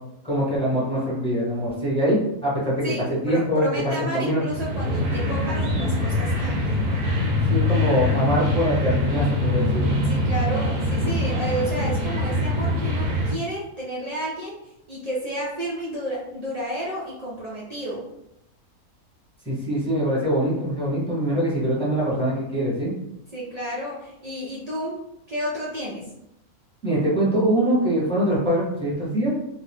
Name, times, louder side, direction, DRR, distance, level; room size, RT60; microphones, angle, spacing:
voice 1, 0.2-3.7 4.0-4.4 7.5-9.9 19.4-22.9 26.8-29.3, equal, 5° left, -7 dB, 0.8 m, -23 dB
voice 2, 2.8-6.8 10.0-14.6 14.9-18.0 23.3-25.0 25.3-26.1, equal, 75° right, -7 dB, 0.3 m, -31 dB
sound 1, 4.5-13.3, left 1 dB, 55° right, 0.7 m, -23 dB
2.8 x 2.2 x 3.5 m, 0.84 s
omnidirectional pair, 1.6 m